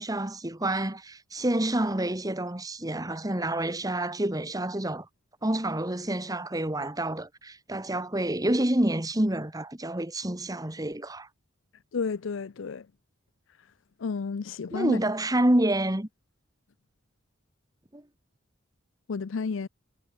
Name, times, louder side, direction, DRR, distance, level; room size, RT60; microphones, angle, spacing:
voice 1, 0.0-5.1 5.4-11.3 14.7-16.1 17.9-18.0, right 1 dB, 20° right, 1.8 m, -28 dB
voice 2, 11.9-12.9 14.0-15.0 19.1-19.7, left 5 dB, 75° left, 0.5 m, -31 dB
head